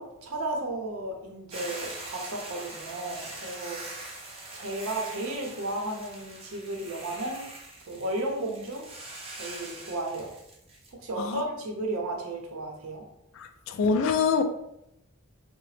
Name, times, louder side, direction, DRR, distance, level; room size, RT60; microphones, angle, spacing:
voice 1, 0.0-7.4 7.9-8.8 9.3-10.3 10.9-13.0, right 2 dB, 85° right, 0.6 m, -34 dB
Hiss / Boiling, 1.5-10.9, right 2 dB, 30° right, 0.5 m, -43 dB
voice 2, 13.3-14.4, left 5 dB, 65° left, 0.3 m, -25 dB
2.8 x 2.0 x 3.2 m
head